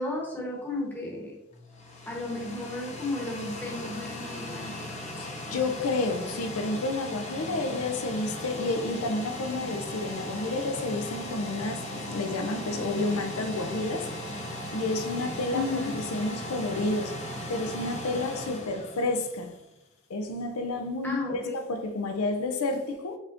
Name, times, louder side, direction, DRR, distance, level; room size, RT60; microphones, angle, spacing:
voice 1, 0.0-1.3 2.1-4.7 15.5-15.9 21.0-21.6, left 2 dB, 10° left, 1.0 m, -33 dB
sound 1, 1.5-19.6, left 1 dB, 30° left, 0.8 m, -38 dB
voice 2, 5.2-14.1 14.7-17.1 17.5-19.5 20.1-23.2, left 2 dB, 90° left, 0.5 m, -30 dB
5.0 x 3.5 x 2.6 m
head